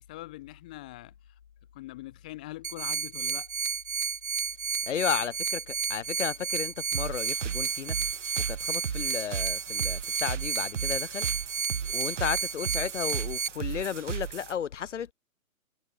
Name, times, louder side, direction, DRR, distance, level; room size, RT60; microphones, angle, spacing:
voice 1, 0.1-1.1 1.7-3.5, left 18 dB, 5° left, 0.5 m, -43 dB
sound 1, 2.6-13.5, right 6 dB, 75° right, 1.9 m, -32 dB
voice 2, 4.8-8.0 8.5-11.3 11.9-15.1, left 8 dB, 55° left, 2.1 m, -33 dB
sound 2, 6.9-14.5, right 8 dB, 55° right, 2.7 m, -36 dB
figure-of-eight pair, 135°, 42 cm